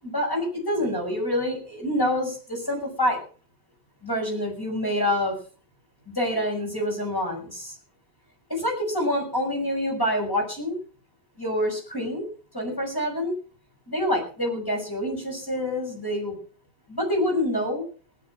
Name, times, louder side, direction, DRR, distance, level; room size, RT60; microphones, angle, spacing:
voice 1, 0.0-3.2 4.0-5.4 6.1-7.7 8.5-10.8 11.4-12.2 12.5-13.3 13.9-16.4 16.9-17.8, left 1 dB, 20° left, -1 dB, 6.6 m, -26 dB
18.0 x 9.3 x 6.1 m, 0.40 s
omnidirectional pair, 1.1 m